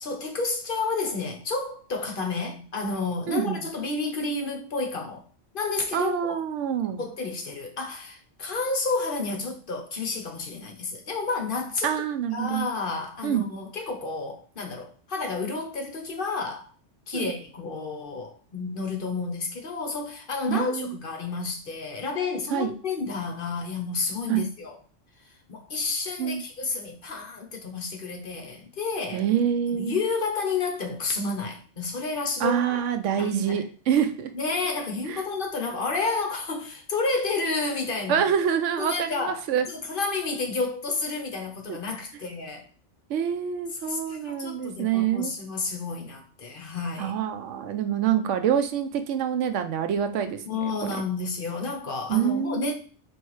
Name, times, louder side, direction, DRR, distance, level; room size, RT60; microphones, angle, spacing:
voice 1, 0.0-5.2 5.5-6.4 7.0-11.9 12.3-16.7 17.1-24.8 25.5-29.2 29.7-32.8 33.2-33.6 34.3-38.3 38.8-39.4 39.7-42.7 43.8-47.1 50.5-52.7, left 4 dB, 50° left, 0.9 m, -30 dB
voice 2, 3.3-3.7 5.9-7.0 11.8-12.7 13.2-13.5 17.1-17.3 20.5-21.0 22.5-22.7 24.3-24.4 26.2-26.4 29.1-30.0 32.4-34.3 35.1-35.2 38.1-39.7 41.7-41.8 43.1-45.3 47.0-50.4 50.8-51.0 52.1-52.7, right 9 dB, 80° right, 0.9 m, -26 dB
4.3 x 3.2 x 3.1 m
omnidirectional pair, 1.3 m